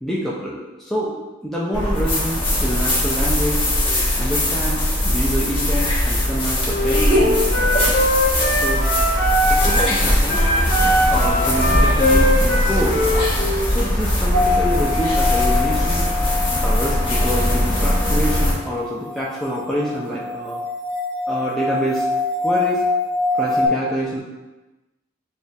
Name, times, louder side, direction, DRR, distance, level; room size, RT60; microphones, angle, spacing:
voice 1, 0.0-3.6 4.2-7.7 8.5-8.9 9.5-10.5 11.1-13.0 13.7-16.0 16.6-20.6 21.3-22.1 22.4-22.8 23.3-24.2, equal, ahead, -7 dB, 0.5 m, -26 dB
sound 1, 1.7-18.5, left 1 dB, 30° left, 1.1 m, -20 dB
Wind instrument woodwind instrument, 6.6-9.9 10.2-13.6, equal, 70° left, 1.3 m, -21 dB
sound 2, 14.3-23.7, left 3 dB, 70° right, 0.7 m, -25 dB
6.8 x 2.4 x 2.7 m, 1.1 s
head